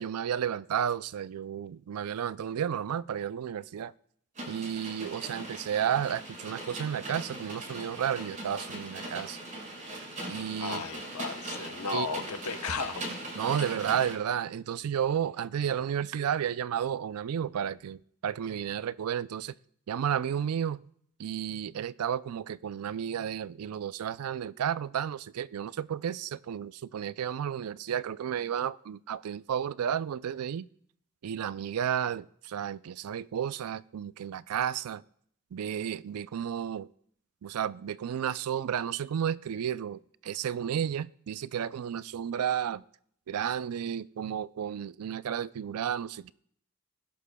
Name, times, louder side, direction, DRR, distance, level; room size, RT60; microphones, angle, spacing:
voice 1, 0.0-3.9 4.5-9.4 10.3-10.8 11.9-12.1 13.3-19.5 19.9-20.9 21.2-30.7 31.2-35.0 35.5-36.9 37.4-42.8 43.3-46.3, right 9 dB, 85° right, 0.4 m, -32 dB
sound 1, 4.3-14.1, right 1 dB, 35° right, 5.9 m, -40 dB
voice 2, 10.6-13.0, left 5 dB, 80° left, 0.9 m, -34 dB
21.5 x 11.5 x 2.2 m
head